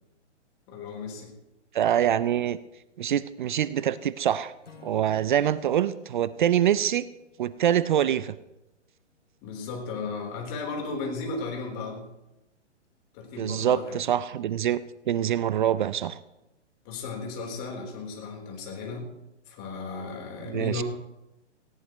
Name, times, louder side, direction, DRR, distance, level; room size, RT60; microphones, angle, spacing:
voice 1, 0.7-1.3 9.4-12.1 13.1-14.0 16.8-19.1 19.5-20.8, left 4 dB, 30° left, 1 dB, 3.9 m, -35 dB
voice 2, 1.7-2.6 3.0-4.5 4.8-7.1 7.4-8.3 13.4-14.8 15.1-16.2 20.5-20.8, right 10 dB, 40° right, 16 dB, 0.5 m, -25 dB
Acoustic guitar / Strum, 4.6-8.0, left 4 dB, 80° left, 3.1 m, -54 dB
18.5 x 17.0 x 3.1 m, 0.92 s
hypercardioid pair, 135°, 36 cm